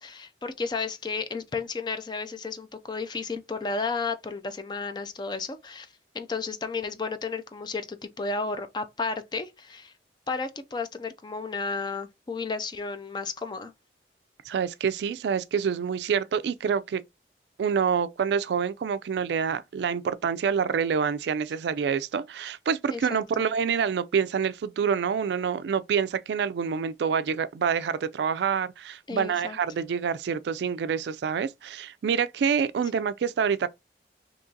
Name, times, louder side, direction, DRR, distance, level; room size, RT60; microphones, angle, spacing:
voice 1, 0.0-5.9 6.1-9.9 10.3-13.7 22.9-23.5 29.1-29.6 32.9-33.1, left 4 dB, 25° left, 0.3 m, -33 dB
voice 2, 14.5-17.0 17.6-33.7, right 6 dB, 70° right, 0.3 m, -27 dB
3.7 x 2.9 x 2.7 m
head